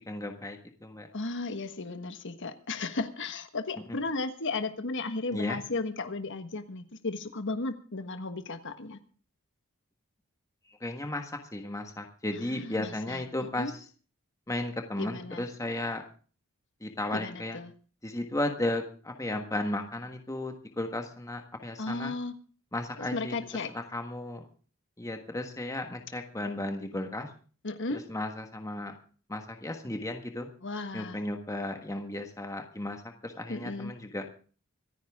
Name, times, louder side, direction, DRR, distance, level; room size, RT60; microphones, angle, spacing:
voice 1, 0.0-1.1 5.3-5.6 10.8-13.9 14.5-16.0 16.8-17.6 18.0-22.1 22.7-23.3 23.7-24.4 25.0-27.3 28.1-28.9 29.3-30.5 30.9-34.2, left 1 dB, 15° left, 5 dB, 1.5 m, -34 dB
voice 2, 1.1-9.0 12.5-13.2 13.6-13.7 15.0-15.4 17.1-17.7 21.8-22.3 23.1-23.7 27.6-28.0 30.6-31.2 33.5-33.9, left 3 dB, 60° left, 9 dB, 1.5 m, -35 dB
26.0 x 10.0 x 3.6 m, 0.40 s
head